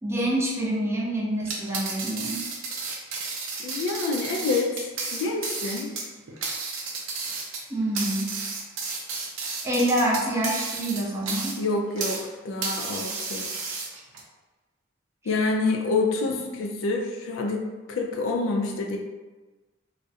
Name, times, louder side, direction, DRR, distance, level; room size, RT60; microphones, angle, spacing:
voice 1, 0.0-2.4 7.7-8.4 9.6-11.6 16.3-16.4, right 1 dB, 15° right, -4 dB, 0.4 m, -26 dB
sound 1, 1.4-12.3 12.6-14.2, right 4 dB, 80° right, 0.5 m, -33 dB
voice 2, 3.6-4.8 5.1-5.9 11.6-13.5 15.3-19.0, left 3 dB, 80° left, 1 dB, 0.4 m, -27 dB
2.3 x 2.0 x 2.7 m, 1.2 s
head